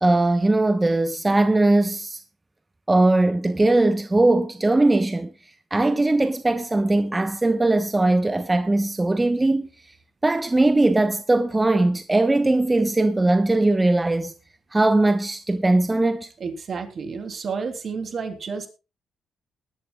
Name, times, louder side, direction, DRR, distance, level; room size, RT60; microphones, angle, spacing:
voice 1, 0.0-2.2 2.9-5.3 5.7-9.7 10.2-14.3 14.7-16.3, right 2 dB, 20° right, 1.1 m, -20 dB
voice 2, 16.4-18.7, right 5 dB, 55° right, 3.1 m, -31 dB
20.5 x 12.0 x 2.4 m
hypercardioid pair, 50°, 0 cm